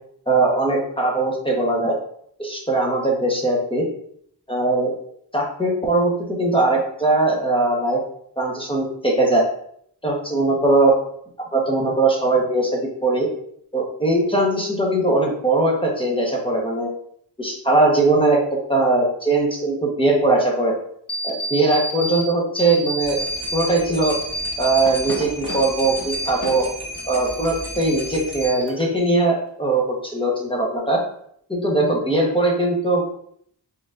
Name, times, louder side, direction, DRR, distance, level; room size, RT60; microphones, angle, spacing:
voice 1, 0.3-2.0 2.4-3.8 4.5-4.9 5.3-8.0 8.4-9.4 10.0-10.9 11.5-13.3 13.7-16.9 17.4-18.4 18.7-20.7 21.2-23.2 23.5-24.1 24.6-26.7 27.1-31.0 31.5-33.2, right 2 dB, 10° left, -2 dB, 1.1 m, -20 dB
sound 1, 21.1-22.2 22.5-23.7 24.0-26.6 26.9-28.1 28.4-29.0, equal, 45° left, 1.1 m, -29 dB
sound 2, 23.0-28.5, equal, 55° right, 1.2 m, -36 dB
4.8 x 3.8 x 2.5 m, 0.67 s
wide cardioid pair, 80°, 46 cm